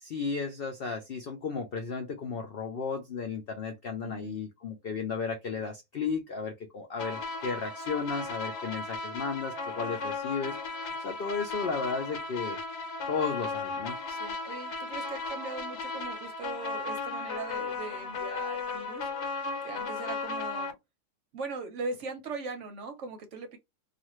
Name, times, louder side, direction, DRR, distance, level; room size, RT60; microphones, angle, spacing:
voice 1, 0.0-10.6 11.0-12.6 13.1-14.0, left 5 dB, 85° left, 0.5 m, -34 dB
voice 2, 4.0-4.4 14.1-19.1 19.6-20.8 21.3-23.6, right 4 dB, 60° right, 0.9 m, -40 dB
sound 1, 7.0-20.7, left 3 dB, 65° left, 1.2 m, -36 dB
2.5 x 2.4 x 3.0 m
omnidirectional pair, 1.7 m